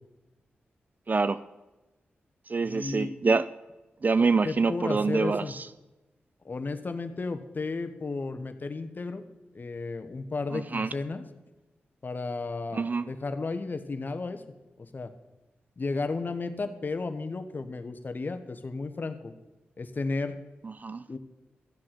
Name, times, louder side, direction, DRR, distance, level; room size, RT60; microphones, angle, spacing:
voice 1, 1.1-1.4 2.5-3.5 4.0-5.7 10.5-10.9 12.7-13.1 20.6-21.0, right 4 dB, 45° right, 15 dB, 0.4 m, -26 dB
voice 2, 2.6-3.1 4.2-5.5 6.4-9.2 9.5-11.2 12.0-14.4 14.8-15.1 15.8-19.3 19.8-20.4 21.1-21.2, left 3 dB, 50° left, 9 dB, 1.1 m, -33 dB
13.5 x 7.6 x 5.9 m, 1.1 s
cardioid pair, 50°, 4 cm